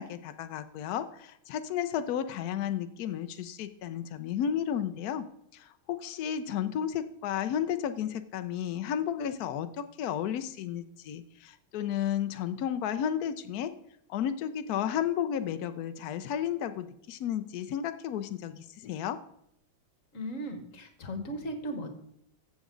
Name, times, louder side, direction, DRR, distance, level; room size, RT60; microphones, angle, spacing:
voice 1, 0.0-5.3 5.5-13.7 14.1-19.2, left 9 dB, 85° left, 10 dB, 0.8 m, -33 dB
voice 2, 20.1-21.9, equal, 40° left, 7 dB, 1.6 m, -37 dB
14.5 x 7.2 x 3.8 m, 0.74 s
omnidirectional pair, 2.3 m